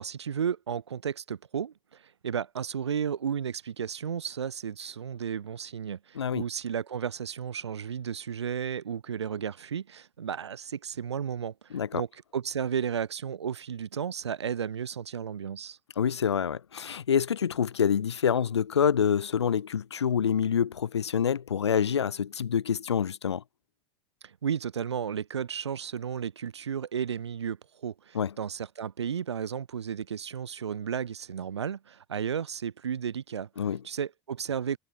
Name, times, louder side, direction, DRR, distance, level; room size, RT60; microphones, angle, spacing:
voice 1, 0.0-12.1 12.3-15.8 24.2-33.5 33.8-34.8, right 8 dB, 75° right, 0.4 m, -33 dB
voice 2, 11.7-12.0 16.0-23.4 28.1-28.3 33.6-33.8, left 7 dB, 75° left, 0.5 m, -27 dB
figure-of-eight pair, 80°, 14 cm